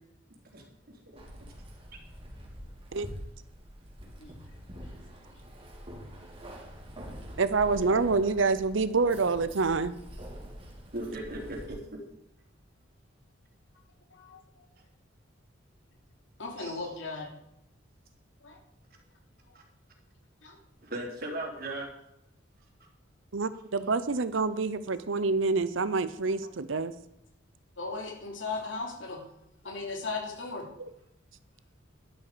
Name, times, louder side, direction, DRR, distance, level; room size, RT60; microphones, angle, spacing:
voice 1, 0.4-1.5 10.9-12.0 16.6-16.8 19.5-19.6 20.8-21.9, right 1 dB, 55° right, 0 dB, 3.5 m, -38 dB
Keys jangling, 1.2-11.7, equal, 30° right, 3.2 m, -45 dB
voice 2, 7.4-9.9 23.3-26.9 30.8-30.9, right 4 dB, 80° right, 13 dB, 0.8 m, -27 dB
voice 3, 16.4-17.3 18.4-18.6 20.4-20.6 27.8-29.2 29.6-30.7, left 3 dB, 75° left, 1 dB, 3.2 m, -37 dB
12.0 x 11.5 x 5.0 m, 0.80 s
head